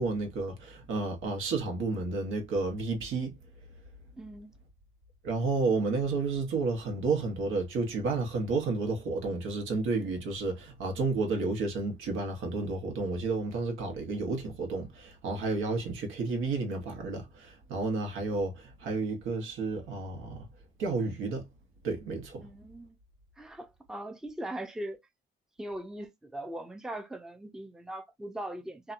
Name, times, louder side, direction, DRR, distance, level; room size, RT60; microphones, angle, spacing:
voice 1, 0.0-3.4 5.2-20.5 20.8-21.5 21.8-22.5, right 3 dB, 80° right, 1.0 m, -31 dB
voice 2, 4.2-4.6 22.4-23.0 23.4-25.0 25.6-28.9, right 1 dB, 5° right, 0.5 m, -40 dB
2.7 x 2.2 x 2.5 m
cardioid pair, 90°, 20 cm